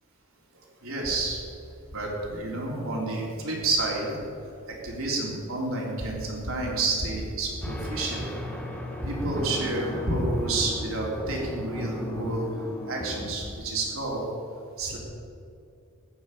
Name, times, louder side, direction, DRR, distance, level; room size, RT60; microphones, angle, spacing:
voice 1, 0.5-1.4 1.9-4.2 4.7-8.3 9.0-12.5 12.9-14.3 14.8-15.0, right 2 dB, 65° right, -2 dB, 3.6 m, -29 dB
sound 1, 7.6-13.3, equal, 5° left, 1.2 m, -36 dB
14.5 x 6.5 x 10.0 m, 2.4 s
head